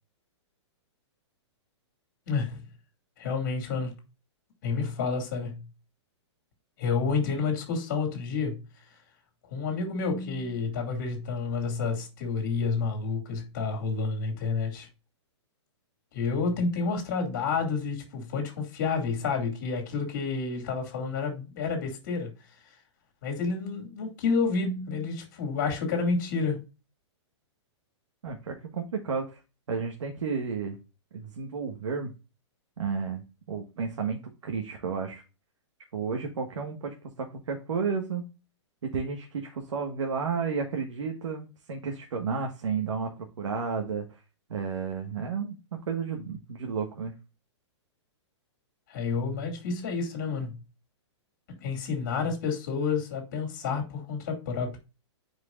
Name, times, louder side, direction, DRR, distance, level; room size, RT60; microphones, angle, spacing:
voice 1, 2.3-2.6 3.2-3.9 4.6-5.6 6.8-8.6 9.5-14.9 16.1-22.3 23.2-26.6 48.9-50.6 51.6-54.8, left 4 dB, 35° left, 2.6 m, -29 dB
voice 2, 28.2-29.4 29.7-30.8 31.1-32.1 32.8-35.2 35.9-38.3 38.8-43.1 43.4-44.2 44.5-45.6 45.9-47.1, right 5 dB, 85° right, 1.5 m, -32 dB
9.8 x 5.0 x 2.5 m
hypercardioid pair, 180°, 15 cm